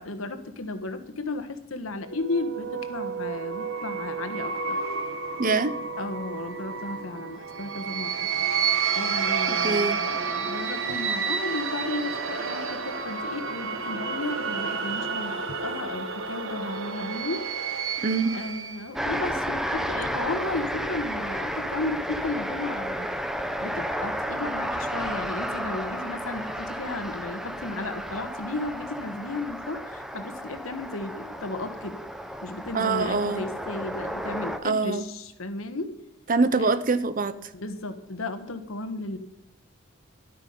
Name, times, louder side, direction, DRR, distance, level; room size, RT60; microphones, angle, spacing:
voice 1, 0.0-4.8 6.0-8.3 8.9-17.4 18.3-23.1 23.6-32.0 32.4-35.9 36.6-36.7 37.5-39.2, left 2 dB, 75° left, 9 dB, 1.3 m, -34 dB
sound 1, 2.1-18.9, right 5 dB, 70° right, 1.3 m, -30 dB
voice 2, 5.4-5.7 9.5-10.0 18.0-18.4 32.7-33.5 34.6-35.0 36.3-37.3, right 3 dB, 40° right, 13 dB, 0.7 m, -24 dB
sound 2, 18.9-34.6, equal, ahead, 0.7 m, -32 dB
12.0 x 9.2 x 5.4 m, 0.83 s
head